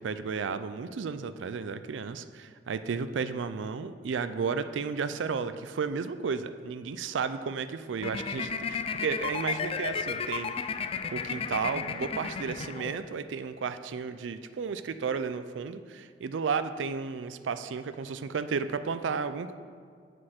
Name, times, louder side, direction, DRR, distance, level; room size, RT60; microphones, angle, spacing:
voice 1, 0.0-10.5 11.1-19.5, right 5 dB, 90° right, 11 dB, 0.4 m, -33 dB
sound 1, 8.0-13.2, left 5 dB, 30° left, 0.3 m, -34 dB
7.6 x 6.3 x 5.8 m, 2.1 s
head